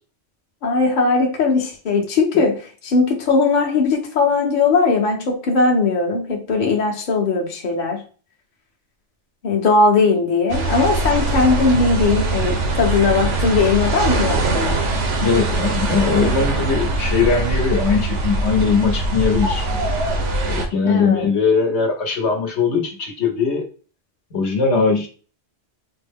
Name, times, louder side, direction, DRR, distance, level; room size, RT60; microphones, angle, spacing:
voice 1, 0.6-2.6 2.8-8.0 9.4-14.8 20.9-21.3, left 4 dB, 45° left, 0 dB, 0.8 m, -19 dB
sound 1, 10.5-20.7, right 2 dB, 85° right, 1.1 m, -22 dB
voice 2, 15.2-19.7 20.4-23.6 24.3-25.1, left 5 dB, 70° left, 2 dB, 1.1 m, -20 dB
4.2 x 2.0 x 3.4 m, 0.38 s
omnidirectional pair, 1.2 m